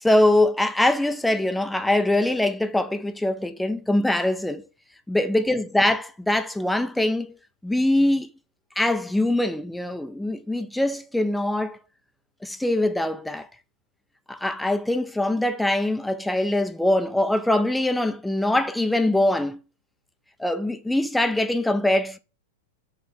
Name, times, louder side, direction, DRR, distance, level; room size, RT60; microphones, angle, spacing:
voice 1, 0.0-4.7 5.1-7.3 7.6-8.3 8.8-11.8 12.4-13.5 14.3-19.6 20.4-22.2, left 1 dB, 5° left, 0.4 m, -23 dB
3.2 x 3.1 x 3.9 m
hypercardioid pair, 130°, 0 cm